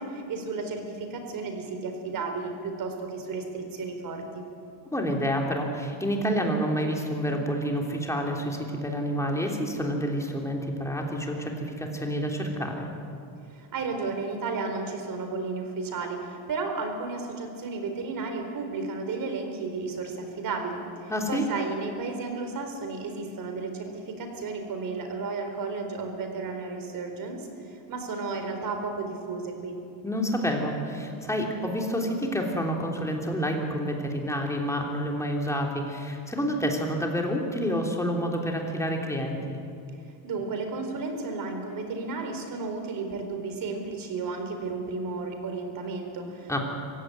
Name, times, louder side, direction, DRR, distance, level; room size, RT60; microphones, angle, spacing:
voice 1, 0.0-4.4 13.5-29.8 40.2-46.6, right 4 dB, 45° right, 5 dB, 4.3 m, -33 dB
voice 2, 4.9-12.9 21.1-21.5 30.0-39.6 46.5-46.6, equal, 5° left, 1 dB, 3.2 m, -28 dB
25.0 x 16.0 x 9.7 m, 2.5 s
cardioid pair, 145°, 45 cm